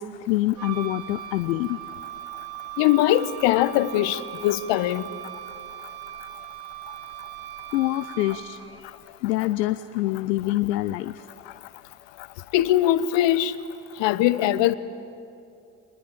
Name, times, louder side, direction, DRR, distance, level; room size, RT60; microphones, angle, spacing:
voice 1, 0.0-1.8 7.7-8.9 9.2-11.3, left 16 dB, 80° left, 0.7 m, -26 dB
Wind instrument woodwind instrument, 0.5-8.9, right 13 dB, 85° right, 1.3 m, -39 dB
voice 2, 2.8-5.1 12.5-13.6 14.0-14.8, left 13 dB, 60° left, 1.1 m, -21 dB
26.5 x 21.0 x 9.1 m
figure-of-eight pair, 55°, 49 cm